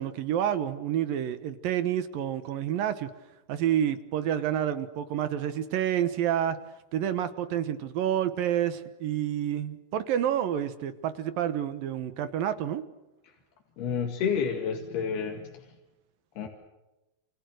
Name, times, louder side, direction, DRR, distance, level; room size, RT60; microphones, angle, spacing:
voice 1, 0.0-3.1 3.5-6.6 6.9-12.8, right 10 dB, 70° right, 11 dB, 2.7 m, -29 dB
voice 2, 13.8-15.5 16.4-16.5, left 6 dB, 75° left, 2 dB, 4.1 m, -29 dB
29.0 x 28.5 x 6.5 m, 1.0 s
omnidirectional pair, 4.6 m